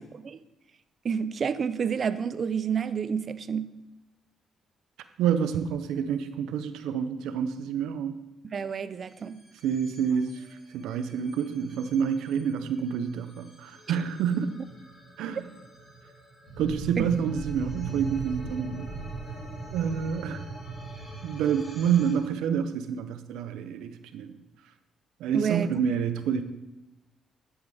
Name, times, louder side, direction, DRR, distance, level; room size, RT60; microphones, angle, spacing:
voice 1, 1.0-3.7 8.4-9.4 13.9-14.0 17.0-17.1 25.3-25.7, right 7 dB, 45° right, 13 dB, 0.5 m, -29 dB
voice 2, 5.2-8.2 9.6-10.4 10.7-14.6 15.2-15.4 16.6-18.9 19.7-20.4 21.2-24.4 25.2-26.4, right 7 dB, 90° right, 9 dB, 0.6 m, -28 dB
sound 1, 9.1-22.1, right 4 dB, 25° left, 3.4 m, -40 dB
11.5 x 7.1 x 3.5 m, 0.99 s
cardioid pair, 90°, 0 cm